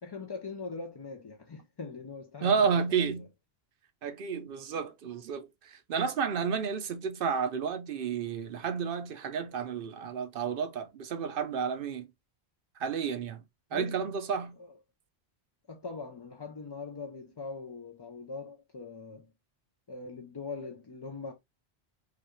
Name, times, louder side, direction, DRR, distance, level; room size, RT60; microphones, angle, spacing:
voice 1, 0.0-3.3 13.7-14.1 14.6-14.7 15.7-19.3 19.9-21.3, left 4 dB, 40° left, 0.3 m, -42 dB
voice 2, 2.4-3.3 4.0-12.1 12.8-13.4 13.7-14.6, right 6 dB, 60° right, 0.7 m, -31 dB
4.9 x 2.3 x 3.0 m
omnidirectional pair, 1.1 m